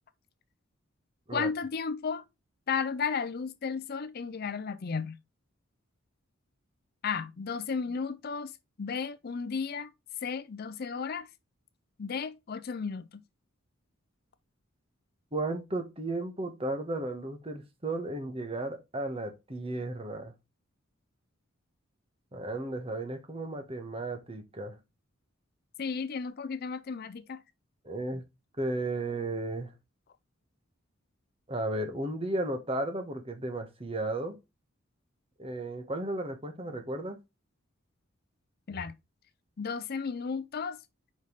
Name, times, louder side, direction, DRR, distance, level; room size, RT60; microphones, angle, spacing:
voice 1, 1.3-2.2 2.7-5.2 7.0-8.5 8.8-9.9 10.2-11.3 12.0-13.2 25.8-27.4 38.7-38.9 39.6-40.8, left 5 dB, 50° left, 0.5 m, -34 dB
voice 2, 15.3-20.3 22.3-24.8 27.8-28.2 28.6-29.7 31.5-34.4 35.4-37.2, right 2 dB, 25° right, 1.3 m, -34 dB
5.3 x 5.2 x 3.9 m
head